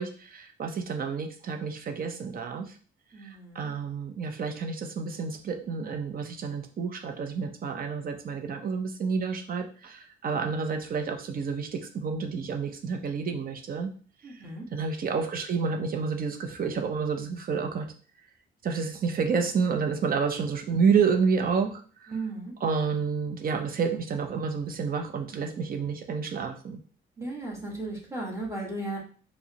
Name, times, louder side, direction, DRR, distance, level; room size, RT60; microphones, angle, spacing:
voice 1, 0.0-2.8 3.2-13.9 14.2-14.4 14.7-17.9 18.6-22.1 22.6-26.8, right 5 dB, 45° right, 5 dB, 0.6 m, -29 dB
voice 2, 3.1-3.7 14.2-14.7 22.1-22.5 27.2-29.0, right 2 dB, 15° right, -2 dB, 1.5 m, -35 dB
4.6 x 2.1 x 2.8 m, 0.42 s
cardioid pair, 90°, 20 cm